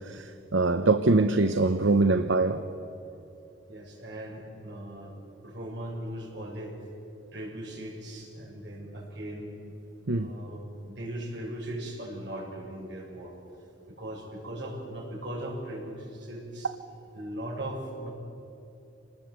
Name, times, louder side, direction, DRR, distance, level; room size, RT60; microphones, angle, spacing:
voice 1, 0.1-2.6 10.1-10.3, right 3 dB, 85° right, 0.9 m, -23 dB
voice 2, 3.7-5.2 5.4-6.8 7.3-9.5 10.1-13.4 13.9-16.7 17.1-18.1, right 1 dB, 65° right, 6.8 m, -38 dB
27.5 x 20.0 x 8.2 m
head